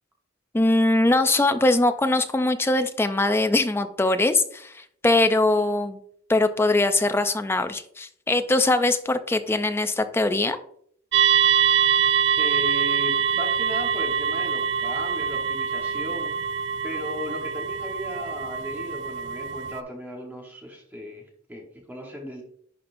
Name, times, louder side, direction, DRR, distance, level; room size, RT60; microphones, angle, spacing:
voice 1, 0.5-6.0 6.3-10.6, left 2 dB, 10° left, 9 dB, 0.4 m, -22 dB
sound 1, 11.1-19.8, right 7 dB, 60° right, 0.4 m, -24 dB
voice 2, 12.4-16.3 16.8-22.4, equal, 10° right, -1 dB, 1.1 m, -36 dB
11.0 x 4.1 x 2.6 m, 0.63 s
head